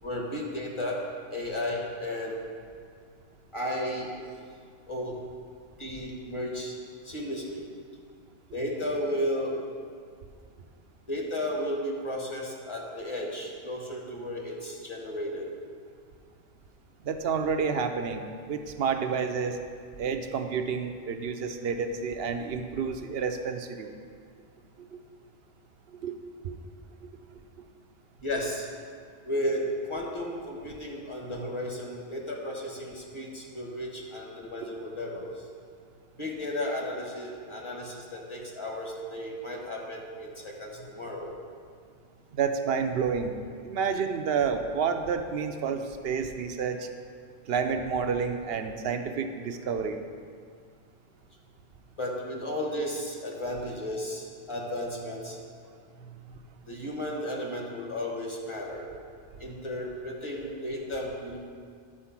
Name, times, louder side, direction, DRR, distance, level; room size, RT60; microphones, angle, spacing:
voice 1, 0.0-2.3 3.5-4.2 4.9-5.2 5.8-6.8 7.0-7.7 8.5-9.6 11.1-15.5 28.2-28.7 29.2-35.3 36.2-41.3 52.0-55.4 56.0-56.1 56.6-58.8 59.4-61.4, left 1 dB, 30° left, -2 dB, 1.3 m, -34 dB
voice 2, 17.0-19.6 20.0-23.9 24.9-25.0 26.0-26.2 26.4-26.6 27.0-27.1 34.6-34.7 42.3-46.9 47.5-50.0, right 6 dB, 70° right, 7 dB, 0.8 m, -30 dB
10.0 x 4.5 x 5.9 m, 2.1 s
omnidirectional pair, 1.0 m